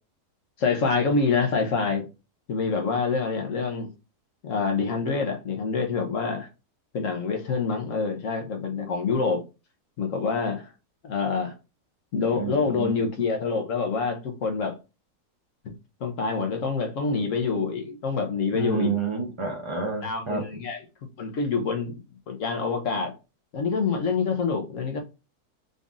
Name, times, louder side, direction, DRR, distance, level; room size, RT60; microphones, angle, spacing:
voice 1, 0.6-2.0 2.5-3.9 4.4-6.5 6.9-9.4 10.0-10.7 11.0-11.5 12.1-14.7 15.6-15.7 16.0-18.9 20.0-20.8 21.2-21.9 22.3-23.1 23.5-25.0, left 4 dB, 55° left, 1.2 m, -26 dB
voice 2, 12.3-12.9 18.5-20.4, right 5 dB, 50° right, 0.3 m, -29 dB
4.0 x 2.5 x 3.5 m
omnidirectional pair, 1.7 m